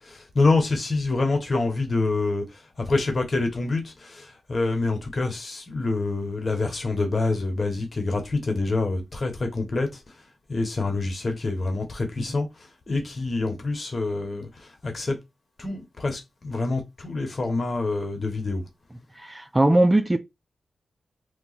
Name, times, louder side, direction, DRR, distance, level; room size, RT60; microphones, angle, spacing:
voice 1, 0.0-10.0 10.5-15.2 15.6-18.6, left 3 dB, 45° left, 1.2 m, -26 dB
voice 2, 19.2-20.2, right 1 dB, 20° right, 0.4 m, -20 dB
2.9 x 2.2 x 4.1 m
cardioid pair, 55°, 0 cm